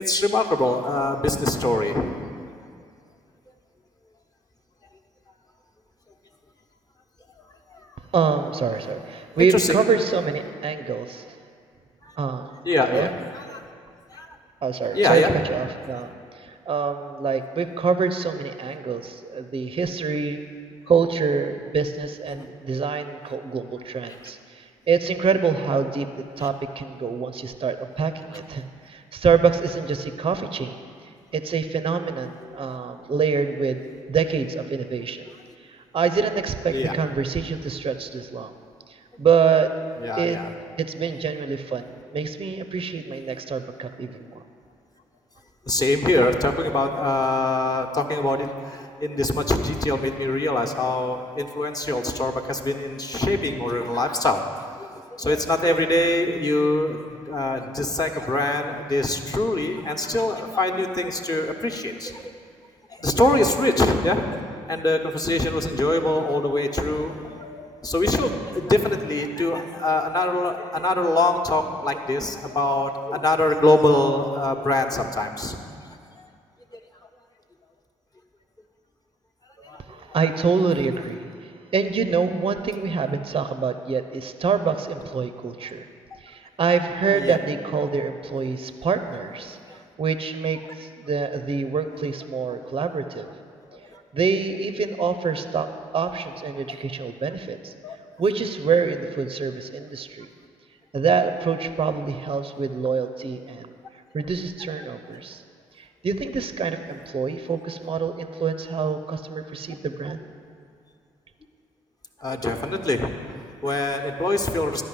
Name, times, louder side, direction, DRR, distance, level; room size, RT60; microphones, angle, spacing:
voice 1, 0.0-2.2 7.7-7.9 9.4-9.8 12.0-12.2 12.6-13.6 14.1-14.4 14.9-15.3 22.3-22.5 24.1-24.3 26.4-26.5 28.3-28.4 32.5-32.8 36.7-36.9 40.0-40.5 45.7-54.5 54.8-62.3 62.9-64.4 64.7-75.6 76.2-76.3 79.6-80.0 87.1-87.4 89.7-89.8 93.7-94.0 96.8-96.9 97.8-98.0 112.2-114.8, left 2 dB, 25° left, 3 dB, 1.2 m, -24 dB
voice 2, 8.1-11.2 12.2-12.5 12.9-13.1 14.6-16.1 16.3-20.4 20.9-30.8 31.3-33.8 34.1-35.2 35.6-38.5 38.9-39.7 40.2-40.4 40.8-44.4 79.9-85.9 86.2-89.6 90.0-93.3 94.1-95.7 95.9-97.7 98.2-100.3 100.9-103.7 104.1-105.4 105.8-110.2, right 5 dB, 40° right, 10 dB, 0.6 m, -25 dB
12.0 x 5.3 x 8.2 m, 2.3 s
hypercardioid pair, 40°, 15 cm